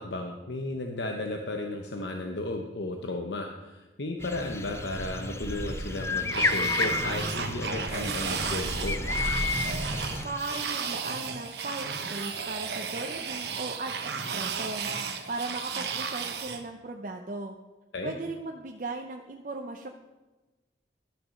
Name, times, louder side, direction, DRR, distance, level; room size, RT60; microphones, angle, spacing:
voice 1, 0.0-9.0 17.9-18.1, left 2 dB, 85° left, 3 dB, 0.9 m, -34 dB
sound 1, 4.2-10.6, left 4 dB, 15° left, 0.3 m, -33 dB
sound 2, 4.2-10.3, right 1 dB, 90° right, 1.9 m, -36 dB
sound 3, 6.3-16.6, right 6 dB, 70° right, 1.0 m, -34 dB
voice 2, 10.2-17.6 18.0-19.9, right 2 dB, 50° right, 3 dB, 0.6 m, -37 dB
12.0 x 6.2 x 6.3 m, 1.2 s
head